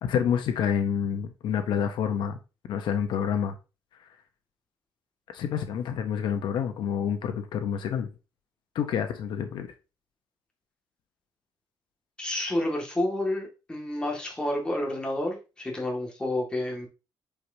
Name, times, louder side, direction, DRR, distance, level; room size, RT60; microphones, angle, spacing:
voice 1, 0.0-2.4 2.7-3.6 5.3-8.1 8.7-9.7, left 8 dB, 80° left, 0.9 m, -28 dB
voice 2, 12.2-16.9, left 1 dB, 10° left, 2.0 m, -29 dB
8.5 x 4.8 x 2.8 m
cardioid pair, 150°, 8 cm